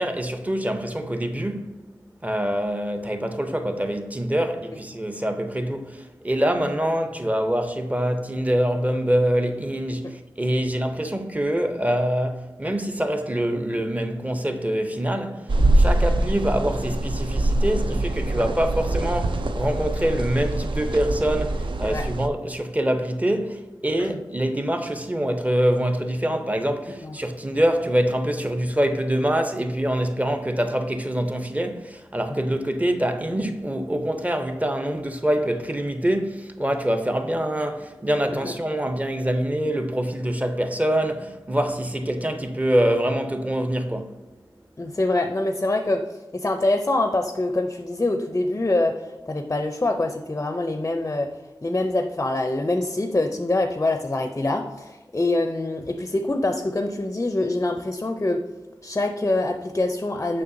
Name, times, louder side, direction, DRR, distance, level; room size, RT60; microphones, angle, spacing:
voice 1, 0.0-1.8 2.2-44.1, right 1 dB, 15° right, 0.6 m, -25 dB
sound 1, 15.5-22.3, right 1 dB, 70° right, 0.4 m, -23 dB
voice 2, 44.8-51.3 51.6-58.4 58.8-60.4, left 2 dB, 30° left, 0.4 m, -25 dB
6.7 x 5.5 x 2.6 m
wide cardioid pair, 60°, 9 cm